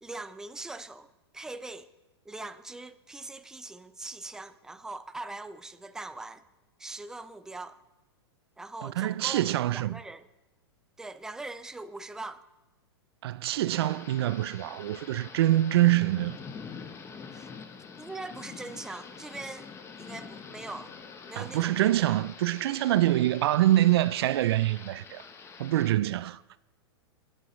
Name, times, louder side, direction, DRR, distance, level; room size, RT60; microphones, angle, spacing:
voice 1, 0.0-1.1 1.3-1.9 2.3-6.4 6.8-7.8 8.6-10.3 11.0-12.4 17.3-17.5 18.0-19.7 20.0-20.9 21.3-21.9, right 2 dB, 5° right, 0.5 m, -41 dB
voice 2, 8.8-10.0 13.2-16.4 21.4-25.2 25.6-26.4, right 14 dB, 65° right, 0.4 m, -25 dB
Thunder / Rain, 13.7-25.9, left 5 dB, 20° left, 0.9 m, -46 dB
26.5 x 9.1 x 3.1 m
hypercardioid pair, 120°, 14 cm